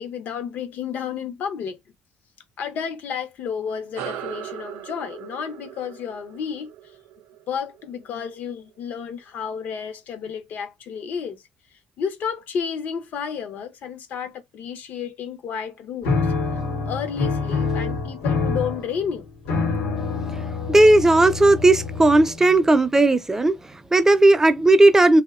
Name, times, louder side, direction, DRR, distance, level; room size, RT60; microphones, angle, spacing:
voice 1, 0.0-1.8 2.6-6.7 7.5-11.4 12.0-16.3 16.8-19.3, left 7 dB, 65° left, 0.6 m, -31 dB
sound 1, 3.9-8.8, right 10 dB, 80° right, 0.5 m, -39 dB
sound 2, 16.0-22.5, left 4 dB, 90° left, 0.9 m, -26 dB
voice 2, 20.7-25.2, right 2 dB, 15° right, 0.5 m, -16 dB
2.6 x 2.1 x 2.4 m
supercardioid pair, 75°, 3 cm